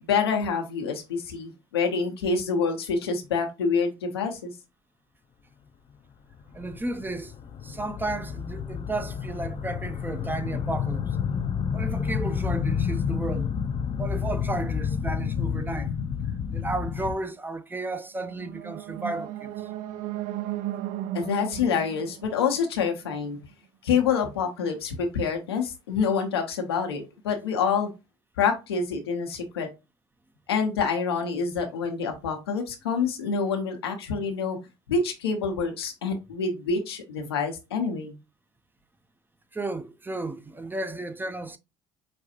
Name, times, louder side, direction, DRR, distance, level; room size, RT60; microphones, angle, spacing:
voice 1, 0.0-4.5 21.1-23.4 23.8-27.9 28.4-29.7 30.5-34.6 34.9-38.2, left 5 dB, 90° left, 0.9 m, -27 dB
sound 1, 6.3-17.2, left 7 dB, 45° left, 0.5 m, -30 dB
voice 2, 6.5-7.4 7.6-11.2 11.7-13.5 14.0-15.9 16.5-19.5 39.5-41.6, right 2 dB, 15° right, 0.6 m, -33 dB
sound 2, 18.2-23.3, right 13 dB, 65° right, 0.6 m, -35 dB
5.1 x 2.3 x 2.8 m
hypercardioid pair, 65°, 13 cm